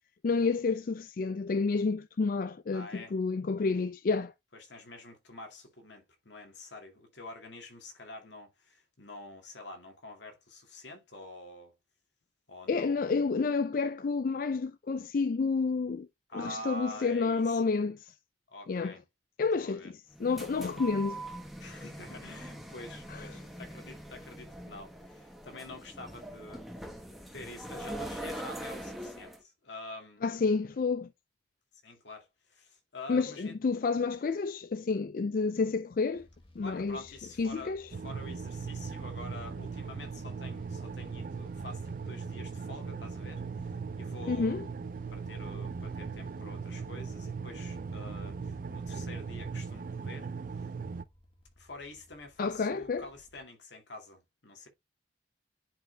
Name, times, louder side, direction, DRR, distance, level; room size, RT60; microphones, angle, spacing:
voice 1, 0.2-4.3 12.7-16.1 16.3-18.2 18.7-19.0 19.4-19.9 20.2-21.2 23.1-23.2 30.2-31.1 33.1-36.3 36.6-37.0 37.4-37.9 44.3-44.6 52.4-53.0, left 4 dB, 50° left, 0.4 m, -30 dB
voice 2, 2.7-3.1 4.5-11.8 12.5-13.1 16.3-17.7 18.5-19.0 19.6-19.9 21.6-27.0 27.3-30.2 31.8-33.5 36.6-44.6 45.1-50.3 50.5-50.7 51.6-54.7, left 2 dB, 75° left, 2.2 m, -47 dB
sound 1, 20.1-29.4, right 1 dB, ahead, 1.1 m, -43 dB
sound 2, 36.1-53.4, left 1 dB, 30° left, 1.6 m, -59 dB
sound 3, 37.9-51.0, right 5 dB, 45° right, 0.4 m, -39 dB
10.5 x 4.9 x 2.3 m
head